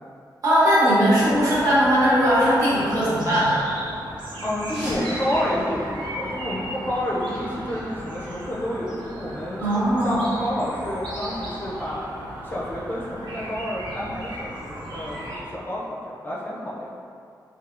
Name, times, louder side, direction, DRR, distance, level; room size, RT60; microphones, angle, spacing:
voice 1, 0.4-3.6 9.6-10.2, equal, 50° right, -10 dB, 1.2 m, -19 dB
sound 1, 1.2-15.4, right 1 dB, 85° right, 0.6 m, -36 dB
voice 2, 4.4-12.0 12.4-16.9, equal, 25° left, -6 dB, 0.4 m, -29 dB
sound 2, 4.6-7.2, equal, 10° right, 1.1 m, -36 dB
3.3 x 2.7 x 2.5 m, 2.4 s
wide cardioid pair, 150°, 8 cm